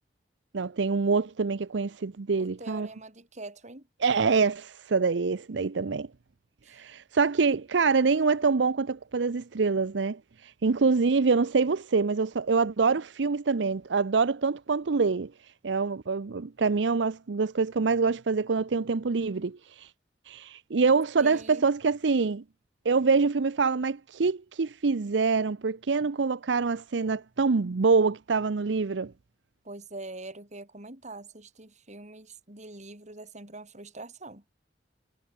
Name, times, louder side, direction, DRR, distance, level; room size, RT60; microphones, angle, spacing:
voice 1, 0.5-2.9 4.0-6.1 6.7-15.3 15.6-19.9 20.3-22.4 22.8-29.1, right 4 dB, 80° right, 0.6 m, -25 dB
voice 2, 2.4-3.9 6.6-6.9 21.2-21.7 29.6-34.4, right 2 dB, 40° right, 5.2 m, -44 dB
head